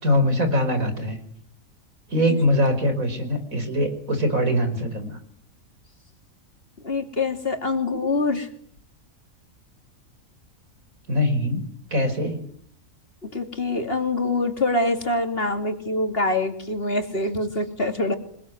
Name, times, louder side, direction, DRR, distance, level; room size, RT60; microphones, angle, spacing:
voice 1, 0.0-1.2 2.1-5.2 11.1-11.6 11.9-12.4, left 1 dB, 80° right, 8 dB, 5.5 m, -22 dB
voice 2, 6.8-8.5 13.3-18.2, left 2 dB, 45° left, 6 dB, 3.2 m, -25 dB
27.5 x 21.0 x 9.6 m, 0.65 s
omnidirectional pair, 1.4 m